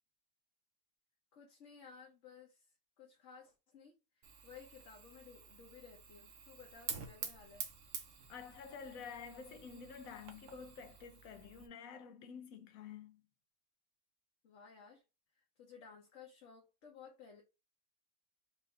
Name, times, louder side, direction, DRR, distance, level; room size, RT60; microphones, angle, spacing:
voice 1, 1.3-7.7 14.4-15.0 15.3-17.4, left 6 dB, 65° left, 1.2 m, -57 dB
Fire, 4.2-11.7, right 6 dB, 70° right, 1.2 m, -49 dB
voice 2, 8.3-13.2, left 6 dB, 90° left, 1.2 m, -50 dB
4.5 x 2.7 x 3.5 m
omnidirectional pair, 1.4 m